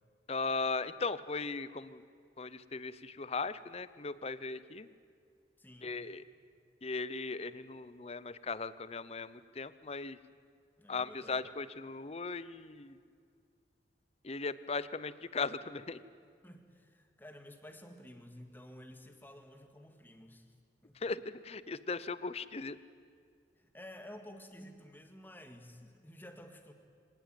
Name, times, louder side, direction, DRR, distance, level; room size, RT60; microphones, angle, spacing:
voice 1, 0.3-2.0 2.4-4.9 5.8-6.2 6.8-10.2 10.9-13.0 14.2-16.0 21.0-22.8, left 4 dB, 35° left, 16 dB, 0.7 m, -38 dB
voice 2, 5.6-6.0 10.8-11.4 16.4-20.6 20.8-21.0 23.6-26.7, left 1 dB, 10° left, 5 dB, 1.9 m, -52 dB
25.0 x 18.5 x 9.2 m, 2.2 s
head